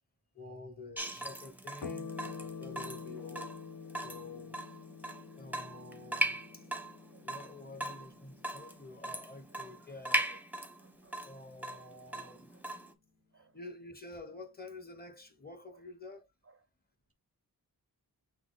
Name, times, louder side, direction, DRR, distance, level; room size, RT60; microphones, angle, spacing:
voice 1, 0.3-3.5 3.9-4.6 5.3-6.7 7.2-10.4 11.2-12.5 13.3-16.3, left 3 dB, 25° left, 1.1 m, -49 dB
Water tap faucet / Drip, 1.0-12.9, right 1 dB, 5° right, 0.7 m, -39 dB
sound 1, 1.8-10.7, left 5 dB, 80° left, 1.1 m, -47 dB
voice 2, 10.8-11.2 11.7-11.8 12.5-12.6 13.3-13.5, right 5 dB, 40° right, 0.5 m, -64 dB
5.7 x 2.0 x 4.0 m
wide cardioid pair, 105°, 38 cm